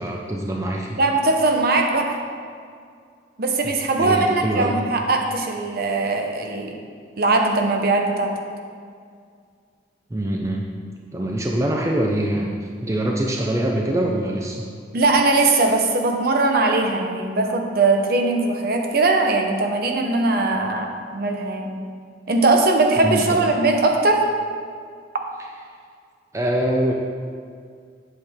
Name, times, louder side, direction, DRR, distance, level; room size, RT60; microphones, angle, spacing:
voice 1, 0.0-1.0 3.6-4.9 10.1-10.7 11.1-14.7 23.0-23.4 26.3-26.9, right 1 dB, 15° right, 0 dB, 0.5 m, -24 dB
voice 2, 1.0-2.2 3.4-6.8 7.2-8.3 14.9-21.7 22.3-24.2, right 3 dB, 55° right, 3 dB, 0.9 m, -20 dB
8.3 x 8.0 x 3.6 m, 2.1 s
head